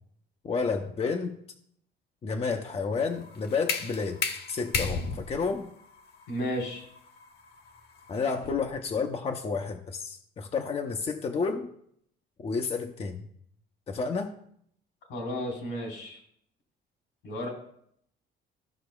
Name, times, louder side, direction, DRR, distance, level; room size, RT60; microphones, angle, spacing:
voice 1, 0.4-1.3 2.2-4.2 4.5-5.7 8.1-11.7 12.4-13.3 13.9-14.3, left 4 dB, 30° left, 3 dB, 0.7 m, -30 dB
sound 1, 3.0-8.8, left 5 dB, 55° left, 1.1 m, -35 dB
voice 2, 6.3-6.9 15.1-16.2 17.2-17.5, equal, 85° left, 0 dB, 3.8 m, -33 dB
15.5 x 5.7 x 2.3 m, 0.68 s
cardioid pair, 125°, 20 cm